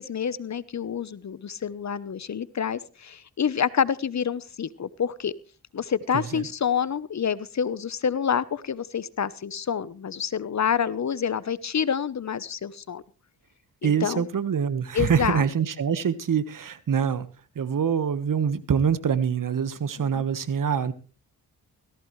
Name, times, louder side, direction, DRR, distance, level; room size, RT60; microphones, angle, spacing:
voice 1, 0.0-5.3 5.7-13.0 13.8-14.3 14.9-15.4 20.0-20.2, left 7 dB, 45° left, 17 dB, 0.9 m, -28 dB
voice 2, 6.1-6.5 13.8-17.3 17.5-20.9, right 7 dB, 55° right, 14 dB, 1.5 m, -25 dB
17.5 x 15.5 x 3.2 m, 0.37 s
supercardioid pair, 50°, 39 cm